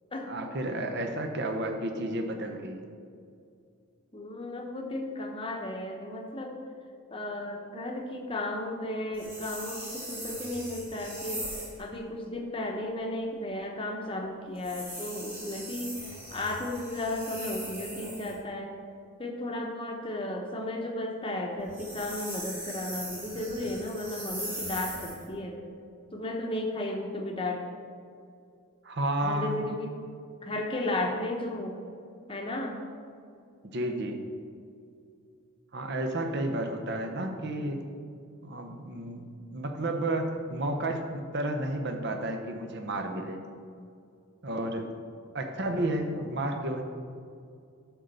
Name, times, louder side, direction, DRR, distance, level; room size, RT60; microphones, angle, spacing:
voice 1, 0.3-2.8 28.8-29.7 33.7-34.2 35.7-37.8 38.4-43.4 44.4-44.9 45.3-46.8, right 1 dB, 50° right, 4 dB, 0.8 m, -31 dB
voice 2, 4.1-6.6 7.1-11.5 11.8-18.7 19.2-25.6 26.1-27.6 29.2-29.9 30.4-31.8 32.3-32.8, left 1 dB, 25° left, 1 dB, 0.8 m, -34 dB
sound 1, 9.1-11.8 14.6-18.4 21.6-25.3, right 1 dB, 10° right, 1.5 m, -40 dB
9.2 x 3.8 x 6.7 m, 2.4 s
head